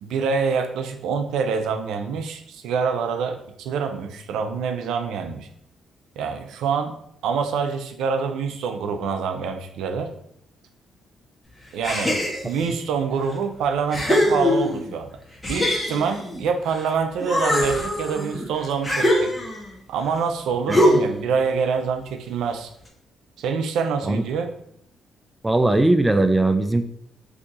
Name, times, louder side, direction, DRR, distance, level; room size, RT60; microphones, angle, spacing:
voice 1, 0.0-5.5 6.2-7.0 7.2-10.1 11.7-12.2 12.4-15.1 15.5-19.3 19.9-22.7 23.4-24.5, right 5 dB, 80° right, 6 dB, 0.4 m, -26 dB
sound 1, 11.8-12.7 13.3-13.4 13.9-14.9 15.4-16.9 17.2-19.7 20.7-21.3, left 1 dB, 15° left, 0.8 m, -22 dB
voice 2, 25.4-26.8, right 2 dB, 15° right, 8 dB, 0.3 m, -19 dB
2.7 x 2.4 x 3.9 m, 0.71 s
cardioid pair, 90°, 0 cm